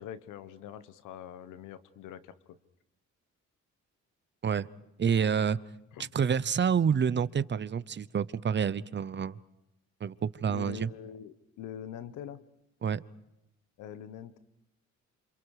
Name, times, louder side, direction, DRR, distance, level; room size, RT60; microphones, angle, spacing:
voice 1, 0.0-2.3 5.2-5.6 5.9-6.1 10.5-12.4 13.8-14.4, left 10 dB, 85° left, 12 dB, 1.3 m, -44 dB
voice 2, 5.0-5.6 6.1-9.4 10.0-10.9 12.8-13.0, right 7 dB, 35° right, 17 dB, 0.8 m, -28 dB
27.5 x 27.5 x 4.9 m, 0.88 s
cardioid pair, 90°, 30 cm